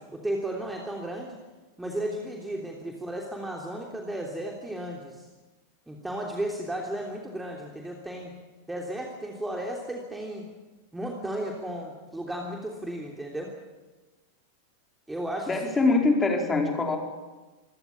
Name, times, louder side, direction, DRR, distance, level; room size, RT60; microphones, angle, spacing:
voice 1, 0.0-1.3 1.8-5.2 5.9-8.4 8.7-10.5 10.9-13.5 15.1-15.6, right 1 dB, 5° right, 0 dB, 3.2 m, -34 dB
voice 2, 15.5-17.0, left 3 dB, 15° left, 2 dB, 4.8 m, -23 dB
26.0 x 17.5 x 8.8 m, 1.2 s
figure-of-eight pair, 90°, 0 cm